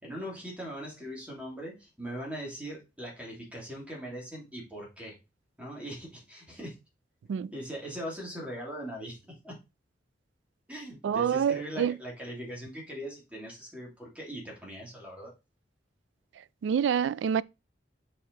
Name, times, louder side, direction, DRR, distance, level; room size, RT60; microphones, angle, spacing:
voice 1, 0.0-5.1 5.6-6.8 7.5-9.2 9.4-9.5 10.7-15.3, equal, 10° right, 2.9 m, -40 dB
voice 2, 11.0-12.0 16.6-17.4, right 8 dB, 85° right, 0.3 m, -27 dB
6.5 x 4.9 x 4.0 m
head